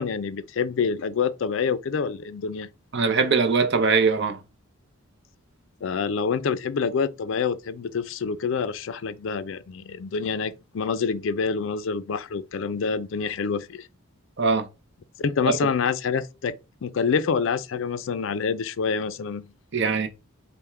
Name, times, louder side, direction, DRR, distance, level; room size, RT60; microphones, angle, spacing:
voice 1, 0.0-2.7 5.8-13.9 15.2-16.6 16.8-19.5, left 5 dB, 60° left, 0.4 m, -27 dB
voice 2, 2.9-4.4 14.4-14.7 19.7-20.1, right 4 dB, 55° right, 0.6 m, -21 dB
3.4 x 2.1 x 4.3 m
head